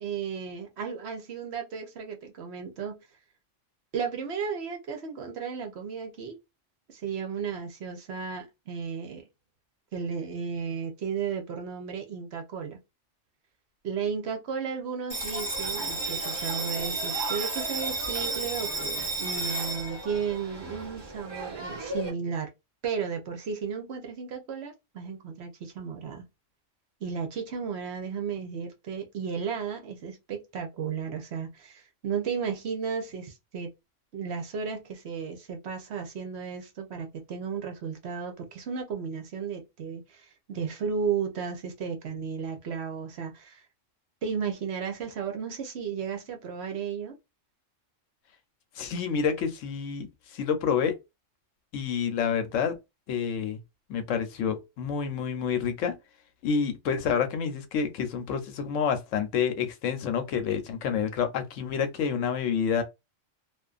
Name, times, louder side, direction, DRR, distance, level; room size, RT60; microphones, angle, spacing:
voice 1, 0.0-2.9 3.9-6.4 6.9-9.3 9.9-12.8 13.8-22.5 22.8-26.2 27.0-33.7 34.1-43.6 44.2-47.2, right 6 dB, 65° right, 0.9 m, -34 dB
Bell, 15.1-22.1, right 2 dB, 25° right, 0.9 m, -32 dB
voice 2, 48.8-51.0 51.7-52.8 53.1-53.6 53.9-55.9 56.4-62.8, left 7 dB, 80° left, 1.0 m, -28 dB
2.5 x 2.4 x 2.4 m
omnidirectional pair, 1.3 m